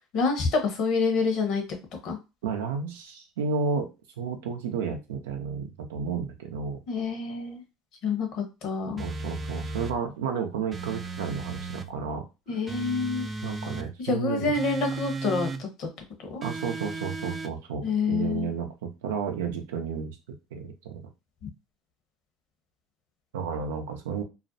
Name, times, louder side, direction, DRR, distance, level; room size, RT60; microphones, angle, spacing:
voice 1, 0.1-1.6 2.0-2.2 6.9-7.6 8.0-9.0 12.5-13.3 14.0-15.9 16.3-16.4 17.8-18.5, left 4 dB, 60° left, 5 dB, 0.8 m, -27 dB
voice 2, 2.4-3.9 4.2-6.8 9.0-12.2 13.4-14.5 16.4-20.2 20.5-21.0 23.3-24.2, right 6 dB, 80° right, 4 dB, 0.5 m, -32 dB
sound 1, 9.0-10.0 10.7-11.9 12.7-13.9 14.5-15.6 16.4-17.5, right 3 dB, 30° right, 0.3 m, -35 dB
2.5 x 2.1 x 2.6 m, 0.27 s
hypercardioid pair, 75°, 0 cm